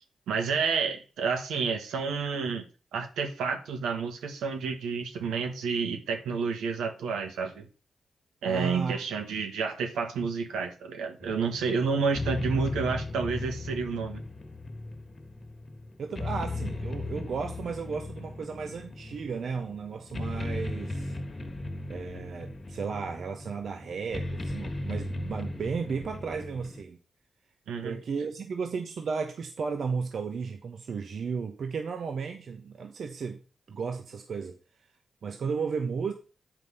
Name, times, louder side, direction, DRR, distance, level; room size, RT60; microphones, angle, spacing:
voice 1, 0.3-2.7 2.9-7.7 8.4-14.2 27.7-28.0, right 5 dB, 90° right, 5 dB, 1.5 m, -30 dB
voice 2, 8.4-9.0 16.0-21.2 21.9-27.0 27.8-33.4 33.7-34.6 35.2-36.1, right 5 dB, 70° right, 5 dB, 1.0 m, -34 dB
sound 1, 11.2-26.8, left 2 dB, 40° left, 1.4 m, -37 dB
7.8 x 5.3 x 5.5 m, 0.34 s
supercardioid pair, 45°, 0 cm